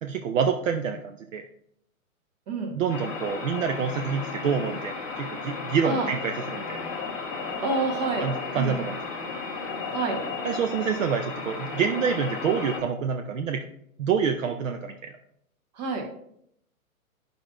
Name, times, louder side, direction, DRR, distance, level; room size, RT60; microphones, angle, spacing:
voice 1, 0.0-1.4 2.7-6.8 8.2-9.0 10.4-13.6 14.0-15.2, right 6 dB, 60° right, 6 dB, 0.6 m, -27 dB
sound 1, 2.9-12.8, left 4 dB, 15° left, 0.7 m, -34 dB
voice 2, 7.6-8.8 9.9-10.2 15.8-16.1, right 3 dB, 30° right, 3 dB, 1.1 m, -28 dB
8.7 x 5.2 x 2.4 m, 0.72 s
hypercardioid pair, 155°, 43 cm